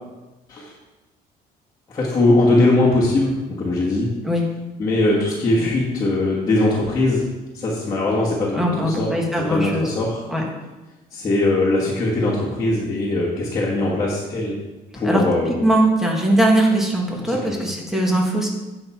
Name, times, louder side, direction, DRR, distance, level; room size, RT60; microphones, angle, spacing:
voice 1, 1.9-4.1 4.8-7.2 7.5-9.1 9.5-10.2 11.1-14.6 14.9-15.6 17.2-17.7, left 2 dB, 25° left, -8 dB, 1.8 m, -20 dB
voice 2, 8.5-9.9 10.3-10.4 15.0-18.5, right 1 dB, ahead, -2 dB, 1.7 m, -20 dB
9.4 x 6.0 x 4.5 m, 1.1 s
cardioid pair, 145°, 16 cm